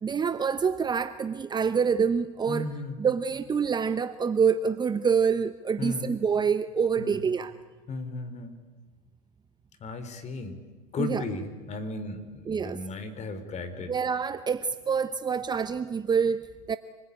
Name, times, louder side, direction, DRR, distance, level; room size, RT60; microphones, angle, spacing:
voice 1, 0.0-2.7 3.0-7.5 11.0-11.2 12.5-12.8 13.9-16.8, right 6 dB, 20° right, 12 dB, 0.9 m, -26 dB
voice 2, 2.5-3.0 5.8-6.1 7.0-7.2 7.9-8.6 9.8-10.6 10.9-13.9, left 3 dB, 35° left, 10 dB, 4.0 m, -35 dB
28.0 x 21.0 x 9.9 m, 1.4 s
hypercardioid pair, 95°, 19 cm